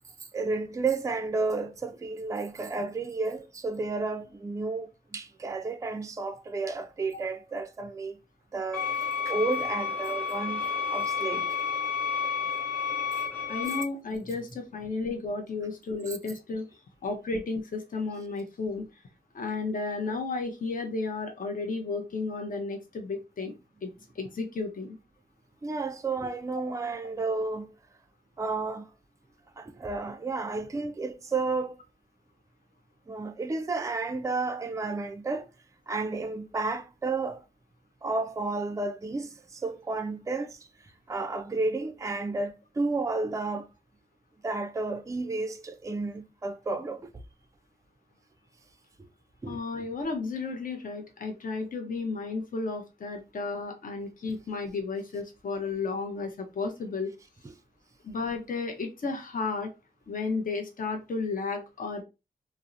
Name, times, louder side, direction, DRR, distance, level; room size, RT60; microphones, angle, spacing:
voice 1, 0.3-8.2 8.5-11.6 16.1-16.2 25.6-27.7 28.4-28.9 29.6-31.8 33.1-35.5 35.9-37.4 38.0-40.6 41.1-43.7 44.4-47.1 49.4-49.6, right 3 dB, 20° right, 0.4 m, -32 dB
sound 1, 8.7-13.8, left 6 dB, 10° left, 0.9 m, -30 dB
voice 2, 13.5-19.0 19.3-23.5 23.8-25.0 26.6-26.7 49.5-57.1 58.0-59.7 60.1-62.0, left 4 dB, 50° left, 0.6 m, -33 dB
2.6 x 2.0 x 2.4 m
cardioid pair, 50°, 17 cm